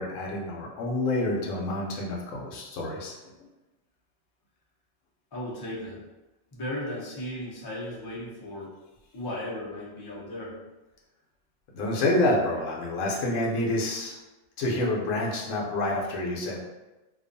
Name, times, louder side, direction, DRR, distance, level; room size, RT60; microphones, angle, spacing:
voice 1, 0.0-3.3 11.7-14.2 14.6-16.6, left 2 dB, 75° left, -2 dB, 0.9 m, -28 dB
voice 2, 5.3-6.0 6.5-8.7 9.1-10.5, left 1 dB, 35° left, -6 dB, 0.4 m, -36 dB
2.5 x 2.2 x 2.5 m, 1.1 s
omnidirectional pair, 1.3 m